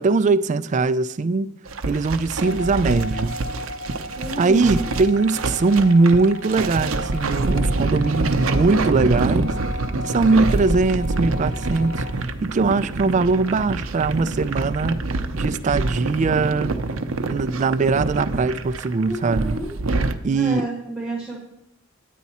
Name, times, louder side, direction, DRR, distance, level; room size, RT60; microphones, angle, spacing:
voice 1, 0.0-1.5 1.9-3.4 4.4-9.5 10.0-15.0 15.3-16.7 17.3-19.6 20.2-20.7, right 3 dB, 35° right, 0.3 m, -21 dB
sound 1, 1.7-20.2, right 2 dB, 75° right, 0.6 m, -26 dB
sound 2, 2.4-12.1, left 2 dB, 60° left, 1.0 m, -36 dB
voice 2, 4.1-4.9 19.0-19.7 20.3-21.4, right 2 dB, 5° right, 1.4 m, -30 dB
9.5 x 9.3 x 4.2 m
head